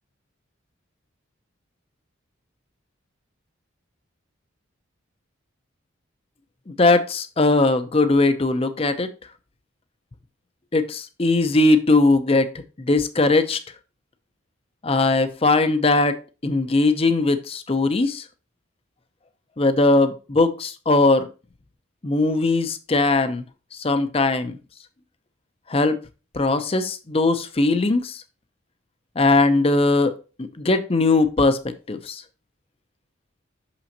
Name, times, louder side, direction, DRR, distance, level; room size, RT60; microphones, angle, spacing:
voice 1, 6.7-9.1 10.7-12.5 12.8-13.6 14.8-16.2 16.4-18.2 19.6-21.3 22.0-23.4 23.7-24.6 25.7-26.0 26.3-28.2 29.2-32.2, left 2 dB, 30° left, 10 dB, 0.6 m, -20 dB
6.1 x 5.8 x 2.8 m, 0.32 s
head